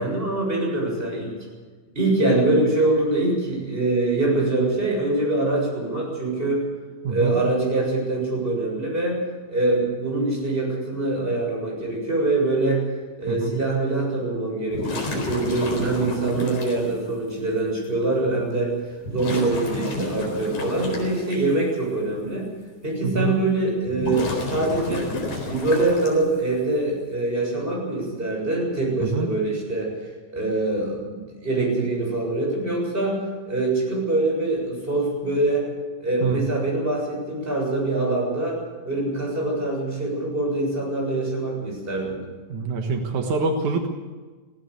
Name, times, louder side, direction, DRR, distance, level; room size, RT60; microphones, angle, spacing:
voice 1, 0.0-1.4 1.9-6.6 7.1-9.2 9.5-12.8 13.2-18.8 19.1-22.5 22.8-25.1 25.5-29.9 30.3-35.7 36.0-42.2, right 2 dB, 10° right, -1 dB, 6.9 m, -24 dB
sound 1, 14.7-16.8 17.8-17.9 19.0-21.4 23.8-26.4, left 2 dB, 40° left, 5.2 m, -30 dB
voice 2, 23.0-23.3 29.0-29.3 36.2-36.4 42.5-43.9, right 4 dB, 85° right, 4 dB, 1.7 m, -25 dB
20.0 x 16.5 x 8.2 m, 1.4 s
omnidirectional pair, 5.9 m